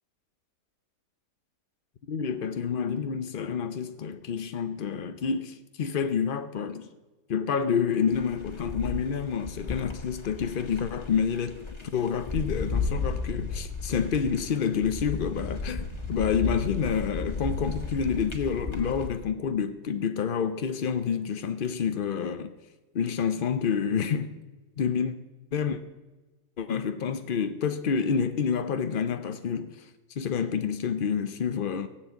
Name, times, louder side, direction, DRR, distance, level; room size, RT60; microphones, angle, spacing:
voice 1, 2.1-6.9 7.3-11.6 11.8-22.5 22.9-24.3 24.8-25.1 25.5-25.8 26.6-31.9, left 6 dB, 70° left, 0.5 m, -28 dB
sound 1, 8.1-19.1, left 4 dB, 15° left, 1.6 m, -34 dB
17.5 x 7.6 x 8.1 m
omnidirectional pair, 1.8 m